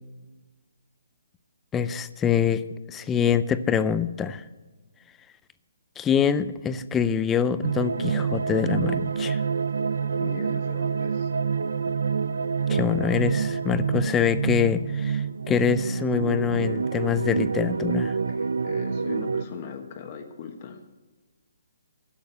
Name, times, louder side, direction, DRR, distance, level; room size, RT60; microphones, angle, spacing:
voice 1, 1.7-2.6 2.9-4.4 6.0-9.4 12.7-18.1, left 7 dB, 15° left, 13 dB, 0.5 m, -25 dB
sound 1, 7.6-19.4, right 6 dB, 80° right, 0.5 m, -27 dB
voice 2, 10.2-11.3 18.3-20.8, left 6 dB, 40° left, 3 dB, 1.3 m, -39 dB
11.5 x 7.3 x 8.5 m, 1.2 s
hypercardioid pair, 150°, 0 cm